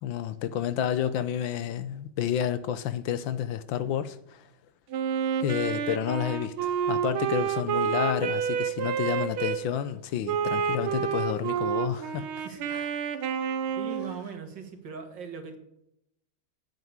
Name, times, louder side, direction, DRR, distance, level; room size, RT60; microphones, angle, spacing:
voice 1, 0.0-4.4 5.4-12.3 12.7-12.9, left 9 dB, 75° left, 1.5 m, -30 dB
Wind instrument woodwind instrument, 4.9-9.6 10.3-14.2, right 7 dB, 90° right, 1.8 m, -29 dB
voice 2, 12.4-12.8 13.1-13.3 13.8-15.6, right 5 dB, 65° right, 2.3 m, -40 dB
9.7 x 8.0 x 8.7 m
omnidirectional pair, 2.2 m